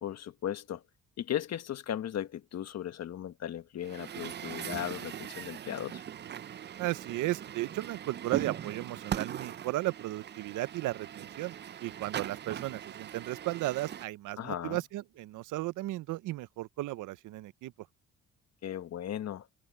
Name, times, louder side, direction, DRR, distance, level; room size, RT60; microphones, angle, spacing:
voice 1, 0.0-0.8 1.2-6.0 14.4-14.8 18.6-19.5, left 10 dB, 60° left, 1.3 m, -37 dB
Truck, 3.8-14.0, right 9 dB, 35° right, 0.4 m, -40 dB
voice 2, 6.8-11.5 11.8-17.7, right 17 dB, 85° right, 0.7 m, -35 dB
cardioid pair, 90°, 30 cm